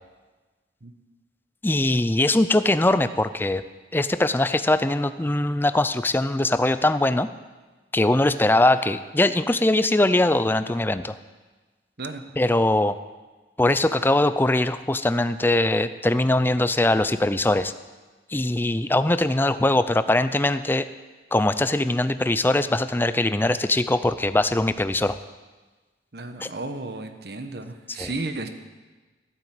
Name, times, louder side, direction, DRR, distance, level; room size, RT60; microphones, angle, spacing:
voice 1, 1.6-3.6 3.9-7.3 7.9-11.2 12.4-13.0 13.6-17.7 18.3-20.9 21.3-25.2 26.4-26.5 28.0-28.1, left 1 dB, 10° left, 12 dB, 0.4 m, -21 dB
voice 2, 26.1-28.5, right 2 dB, 60° right, 8 dB, 1.2 m, -33 dB
14.5 x 9.0 x 7.8 m, 1.3 s
head